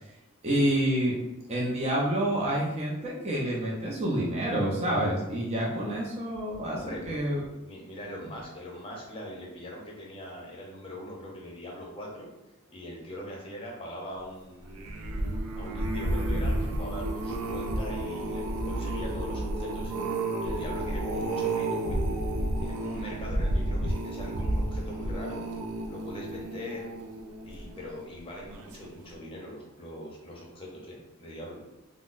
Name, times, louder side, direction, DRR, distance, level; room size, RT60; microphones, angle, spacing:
voice 1, 0.4-1.2 1.5-7.4, right 1 dB, 30° right, -4 dB, 0.5 m, -28 dB
voice 2, 6.7-7.1 7.6-12.3 12.7-14.9 15.5-19.9 20.4-22.0 22.6-25.4 25.9-26.9 27.4-31.6, equal, 25° left, -2 dB, 0.7 m, -41 dB
sound 1, 14.6-28.0 28.5-28.8 29.1-29.2, right 1 dB, 85° right, 0.4 m, -31 dB
3.8 x 2.0 x 2.5 m, 0.95 s
head